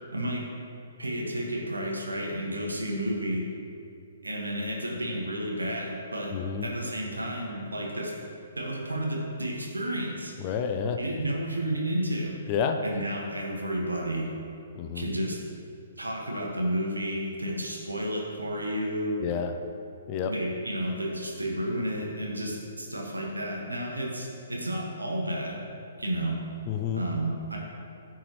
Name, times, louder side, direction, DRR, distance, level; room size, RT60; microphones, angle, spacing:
voice 1, 0.1-0.4 1.0-3.4 4.2-6.3 6.6-8.1 8.6-10.3 11.0-12.3 12.8-14.3 14.9-15.4 16.0-19.2 20.3-25.6 26.0-26.4 26.9-27.6, right 1 dB, 80° right, -2 dB, 1.6 m, -31 dB
voice 2, 6.3-6.7 10.4-11.0 12.5-12.8 14.7-15.1 19.2-19.5 20.1-20.3 26.7-27.0, left 7 dB, 30° left, 6 dB, 0.5 m, -29 dB
13.5 x 4.7 x 3.1 m, 2.6 s
figure-of-eight pair, 125°, 0 cm